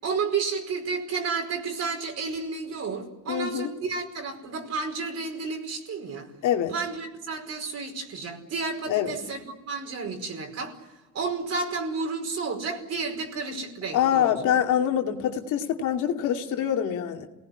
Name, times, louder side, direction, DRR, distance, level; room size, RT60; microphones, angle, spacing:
voice 1, 0.0-6.3 6.7-10.9 11.1-14.4, right 4 dB, 55° right, 4 dB, 5.1 m, -31 dB
voice 2, 3.3-3.7 6.4-6.7 8.9-9.2 13.9-17.3, left 9 dB, 80° left, 3 dB, 2.6 m, -25 dB
27.5 x 18.5 x 9.8 m, 1.1 s
cardioid pair, 100°, 31 cm